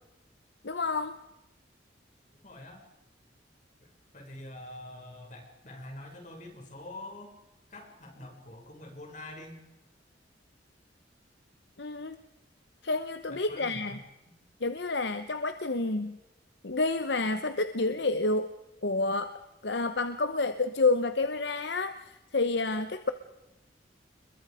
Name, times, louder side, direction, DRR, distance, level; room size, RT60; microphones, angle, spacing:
voice 1, 0.6-1.2 11.8-12.2 12.8-14.0 14.6-16.2 16.6-18.5 18.8-19.3 19.6-23.1, left 3 dB, 65° left, 10 dB, 1.0 m, -29 dB
voice 2, 2.4-2.8 4.1-7.4 7.7-9.6 13.3-14.0, left 1 dB, 40° left, 2 dB, 6.5 m, -45 dB
28.5 x 22.0 x 5.1 m, 0.96 s
head